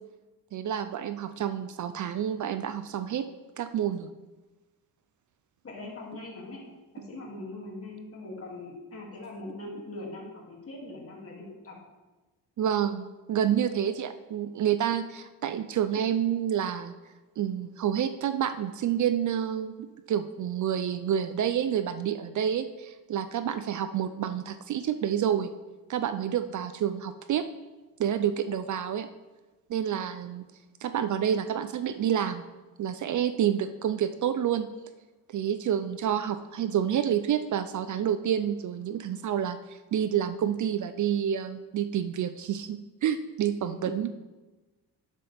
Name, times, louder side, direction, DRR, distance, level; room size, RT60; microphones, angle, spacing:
voice 1, 0.5-3.3 3.6-4.1 12.6-16.9 17.4-25.5 25.9-27.4 28.0-29.1 29.7-30.4 30.8-32.4 32.8-34.7 35.3-44.1, right 9 dB, 50° right, 11 dB, 0.5 m, -28 dB
voice 2, 5.6-6.6 6.9-11.8 43.6-44.0, left 2 dB, 35° left, -2 dB, 2.6 m, -41 dB
11.5 x 7.4 x 3.5 m, 1.2 s
cardioid pair, 125°, 38 cm